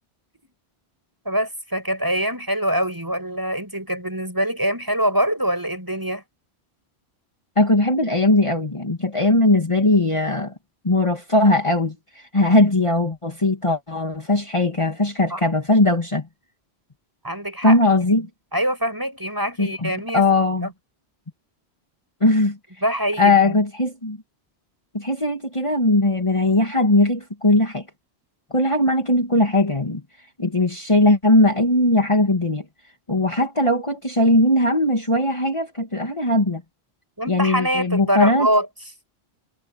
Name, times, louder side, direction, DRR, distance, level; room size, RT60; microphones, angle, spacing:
voice 1, 1.3-6.2 15.3-15.4 17.2-17.8 18.5-20.2 20.6-20.7 22.8-23.6 37.2-38.7, equal, 20° right, 7.4 m, -24 dB
voice 2, 7.6-10.5 10.8-16.3 17.6-18.3 19.6-20.7 22.2-22.6 23.2-24.2 24.9-27.8 28.5-30.0 30.4-32.6 33.1-36.6 37.3-38.5, left 2 dB, 30° left, 2.3 m, -19 dB
omnidirectional pair, 1.1 m